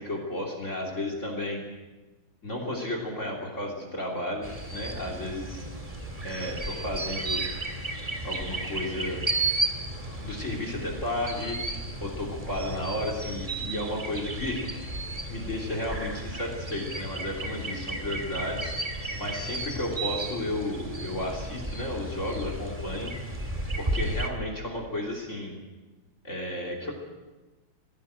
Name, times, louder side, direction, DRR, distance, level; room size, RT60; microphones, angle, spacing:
voice 1, 0.0-1.6 2.4-5.7 6.2-7.4 8.2-9.2 10.2-11.6 12.0-14.6 15.3-18.7 19.2-23.1 23.8-25.6 26.2-26.9, left 1 dB, 35° left, 2 dB, 3.4 m, -33 dB
sound 1, 4.4-24.3, right 2 dB, 15° right, 2.1 m, -33 dB
19.0 x 16.5 x 8.9 m, 1.2 s
omnidirectional pair, 2.2 m